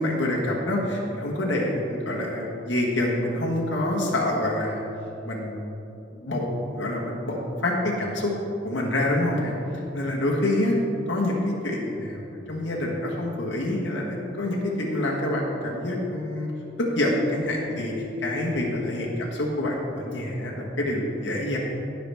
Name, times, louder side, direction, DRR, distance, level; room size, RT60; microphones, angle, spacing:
voice 1, 0.0-4.8 5.2-5.8 6.2-8.3 8.6-9.5 9.9-10.7 11.1-16.5 16.8-21.6, left 1 dB, 90° left, -3 dB, 1.5 m, -26 dB
16.0 x 5.9 x 3.5 m, 2.9 s
head